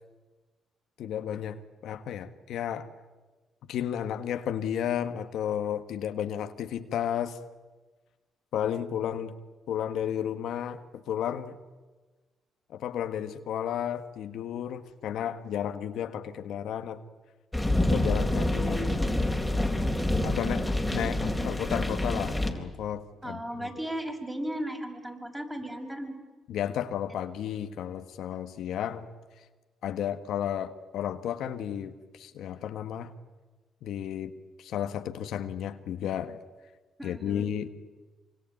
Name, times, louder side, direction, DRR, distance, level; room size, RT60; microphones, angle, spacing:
voice 1, 1.0-2.9 3.7-7.4 8.5-9.3 9.7-11.6 12.7-17.0 17.8-19.0 20.2-23.7 26.5-29.1 29.8-33.1 33.8-34.3 34.6-36.4 37.0-37.7, left 9 dB, 80° left, 8 dB, 1.5 m, -33 dB
sound 1, 17.5-22.5, left 1 dB, 5° left, 3.9 m, -27 dB
voice 2, 23.2-26.2 27.1-27.2 37.0-37.5, right 1 dB, 10° right, 3 dB, 6.1 m, -36 dB
26.0 x 25.0 x 9.2 m, 1.3 s
cardioid pair, 90°, 0 cm